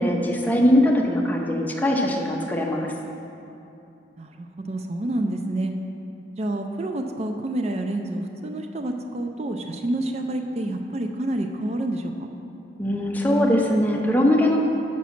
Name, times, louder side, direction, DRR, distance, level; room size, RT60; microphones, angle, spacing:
voice 1, 0.0-2.9 12.8-14.6, left 1 dB, 10° left, -1 dB, 0.7 m, -21 dB
voice 2, 4.2-5.7 6.4-12.3, right 1 dB, 35° right, 5 dB, 0.4 m, -28 dB
6.1 x 6.0 x 5.8 m, 2.7 s
head